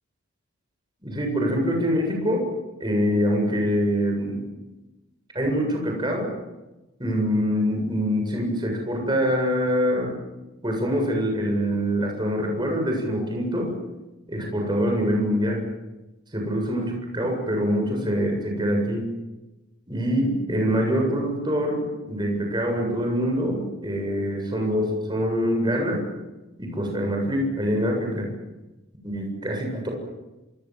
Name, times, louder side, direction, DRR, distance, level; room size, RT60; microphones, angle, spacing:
voice 1, 1.0-2.5 2.8-4.5 5.3-6.3 7.0-10.2 10.6-13.7 14.3-15.7 16.3-19.1 19.9-26.0 26.6-28.3 29.0-29.9, equal, 20° right, 1 dB, 7.5 m, -24 dB
27.5 x 26.0 x 7.8 m, 1.1 s
head